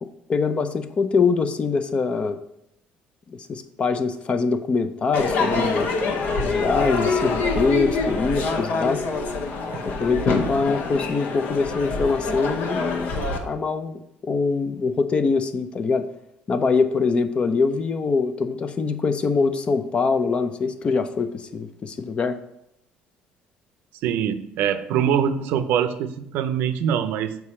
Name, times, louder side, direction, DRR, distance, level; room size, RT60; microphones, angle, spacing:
voice 1, 0.0-2.4 3.3-5.9 6.4-9.0 9.8-13.1 13.4-16.1 16.5-22.4, left 4 dB, 30° left, 10 dB, 0.5 m, -23 dB
Crowd / Fireworks, 5.1-13.4, left 3 dB, 65° left, 1.0 m, -25 dB
voice 2, 24.0-27.4, right 8 dB, 75° right, 10 dB, 0.6 m, -23 dB
6.8 x 4.7 x 4.3 m, 0.78 s
cardioid pair, 130°, 3 cm